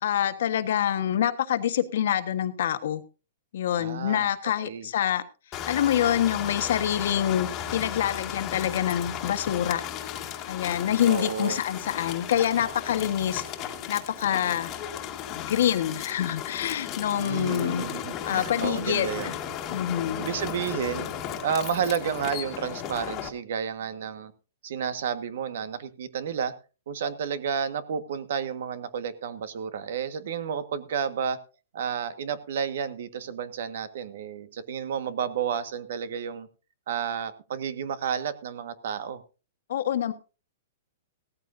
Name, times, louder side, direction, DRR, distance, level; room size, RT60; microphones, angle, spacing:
voice 1, 0.0-3.0 3.5-5.2 5.7-9.8 10.5-14.7 15.3-17.8 18.2-19.3 19.7-20.3 39.7-40.1, left 10 dB, 65° left, 10 dB, 1.4 m, -26 dB
voice 2, 3.8-4.3 4.6-4.9 11.1-11.6 17.2-19.3 20.2-21.1 21.4-24.3 24.6-26.5 26.9-31.4 31.7-36.5 36.9-39.2, right 7 dB, 60° right, 11 dB, 1.6 m, -31 dB
sound 1, 5.5-23.3, left 9 dB, 25° left, 1.8 m, -35 dB
17.0 x 14.0 x 2.7 m, 0.33 s
hypercardioid pair, 165°, 0 cm